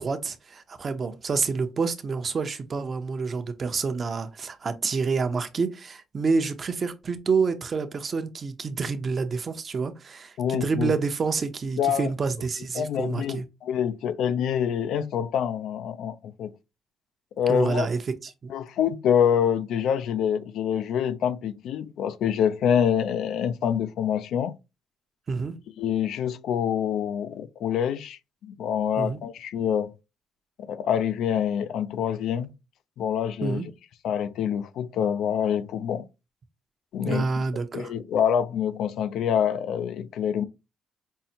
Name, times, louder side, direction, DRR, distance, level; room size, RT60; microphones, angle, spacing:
voice 1, 0.0-13.4 17.5-18.5 25.3-25.6 29.0-29.2 33.4-33.7 37.0-37.9, right 4 dB, 45° right, 0.6 m, -28 dB
voice 2, 10.4-10.9 11.8-12.1 12.8-16.5 17.4-17.9 18.5-24.5 25.8-28.2 28.5-29.9 30.6-32.5 33.0-33.7 34.0-36.1 36.9-37.3 37.7-40.4, left 8 dB, 80° left, 0.3 m, -26 dB
5.4 x 2.0 x 2.7 m
cardioid pair, 90°, 0 cm